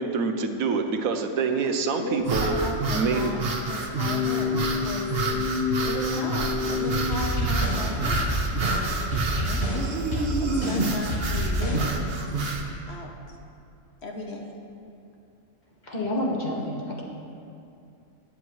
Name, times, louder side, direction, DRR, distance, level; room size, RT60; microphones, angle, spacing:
voice 1, 0.0-2.5 2.9-3.3, right 4 dB, 85° right, 6 dB, 1.2 m, -26 dB
voice 2, 2.0-3.4 3.7-5.1 5.8-8.3 9.3-9.6 10.1-12.1 12.9-13.1 14.0-14.5, left 2 dB, 55° left, 2 dB, 1.1 m, -36 dB
sound 1, 2.2-12.7, right 3 dB, 50° right, 1.1 m, -29 dB
sound 2, 3.9-7.1, left 5 dB, 10° left, 1.4 m, -28 dB
sound 3, 6.8-11.9, equal, 85° left, 3.7 m, -28 dB
voice 3, 15.8-17.0, left 1 dB, 35° left, -4 dB, 1.8 m, -29 dB
20.0 x 7.8 x 3.1 m, 2.6 s
omnidirectional pair, 1.4 m